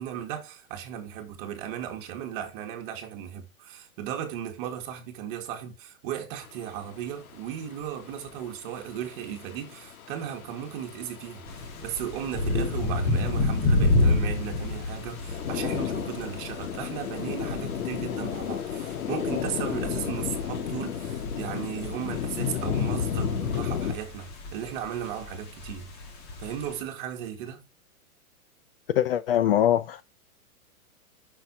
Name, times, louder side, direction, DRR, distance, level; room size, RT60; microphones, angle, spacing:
voice 1, 0.0-11.4 11.8-25.9 26.4-27.6, right 10 dB, 35° right, 2.0 m, -36 dB
sound 1, 6.4-23.9, left 8 dB, 70° left, 2.1 m, -34 dB
sound 2, 11.5-26.8, left 2 dB, 25° left, 2.2 m, -30 dB
voice 2, 29.0-30.0, left 11 dB, 40° left, 0.5 m, -22 dB
9.8 x 6.2 x 2.9 m
hypercardioid pair, 160°, 44 cm